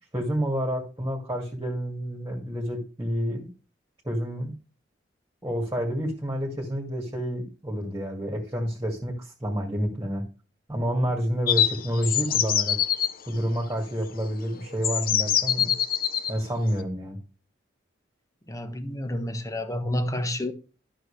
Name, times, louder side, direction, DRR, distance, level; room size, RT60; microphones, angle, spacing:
voice 1, 0.1-3.5 4.0-4.5 5.4-10.2 10.7-12.8 13.3-15.7 16.3-17.2, equal, 15° right, 2.3 m, -29 dB
sound 1, 11.5-13.1 14.2-14.3 14.8-16.3, left 10 dB, 50° left, 0.8 m, -24 dB
voice 2, 18.5-20.5, left 1 dB, 15° left, 1.1 m, -29 dB
12.5 x 6.3 x 3.3 m
head